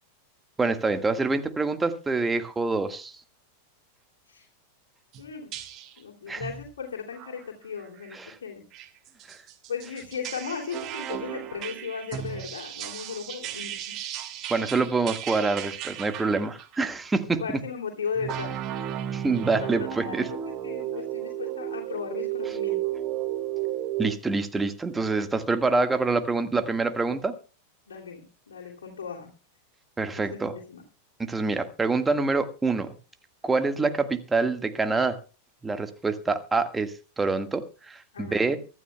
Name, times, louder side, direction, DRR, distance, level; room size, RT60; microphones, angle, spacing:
voice 1, 0.6-3.1 6.3-6.4 8.1-8.4 9.3-9.4 14.5-17.4 19.1-20.3 24.0-27.3 30.0-30.5 31.2-32.9 33.4-35.2 35.6-38.6, right 3 dB, 10° right, 8 dB, 1.7 m, -26 dB
sound 1, 5.1-5.2 5.5-6.0 6.4-6.7 7.2-7.4 7.8-8.1 8.7-16.8 18.2-24.2, right 12 dB, 35° right, 1.8 m, -34 dB
voice 2, 5.2-5.5 6.0-8.6 9.7-14.0 17.3-18.6 19.5-22.8 27.9-29.3 30.1-30.8 38.1-38.6, left 6 dB, 65° left, -1 dB, 3.0 m, -36 dB
24.5 x 13.0 x 2.3 m, 0.35 s
figure-of-eight pair, 90°, 0 cm